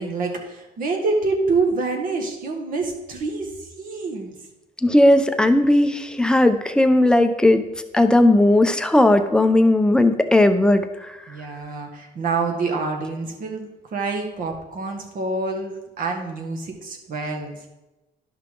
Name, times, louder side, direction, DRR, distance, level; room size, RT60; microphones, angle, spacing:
voice 1, 0.0-4.4 11.3-17.6, right 3 dB, 55° right, 2 dB, 1.7 m, -27 dB
voice 2, 4.8-7.6 7.9-11.1, left 1 dB, 5° left, 8 dB, 0.7 m, -16 dB
11.5 x 5.8 x 3.8 m, 1.0 s
cardioid pair, 110°, 17 cm